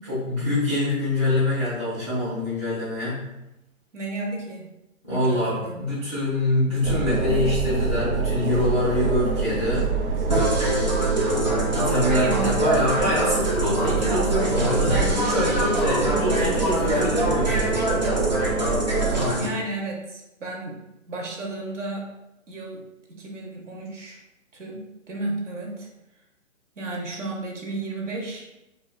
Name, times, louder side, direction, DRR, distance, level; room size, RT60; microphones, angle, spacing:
voice 1, 0.0-3.3 5.0-9.9 11.6-18.0, left 1 dB, 5° right, -15 dB, 0.7 m, -25 dB
voice 2, 3.9-4.7 5.1-5.8 12.2-12.6 19.3-20.8 21.1-22.1 22.5-24.2 24.5-25.9 26.8-28.5, right 2 dB, 60° right, 0 dB, 0.8 m, -33 dB
sound 1, 6.8-19.4, right 3 dB, 85° right, 0.8 m, -26 dB
sound 2, 10.3-19.5, right 2 dB, 35° right, 0.5 m, -25 dB
sound 3, 10.4-15.9, right 1 dB, 45° left, 0.4 m, -38 dB
4.1 x 2.3 x 2.2 m, 0.91 s
hypercardioid pair, 170°, 41 cm